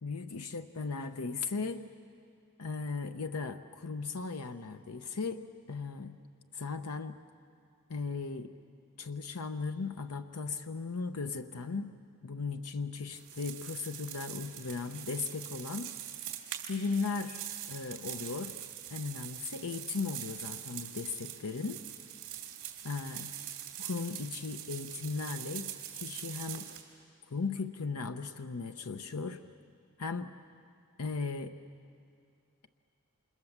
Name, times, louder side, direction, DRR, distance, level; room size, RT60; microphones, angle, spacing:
voice 1, 0.0-1.8 2.6-6.2 6.5-7.2 7.9-8.5 9.0-11.9 12.2-15.9 16.7-18.5 18.9-21.8 22.8-23.3 23.8-26.7 27.3-29.4 30.0-30.3 31.0-31.5, left 4 dB, 85° left, 8 dB, 0.8 m, -37 dB
sound 1, 13.1-26.8, right 11 dB, 60° right, 3.2 m, -43 dB
29.5 x 27.0 x 7.3 m, 2.4 s
head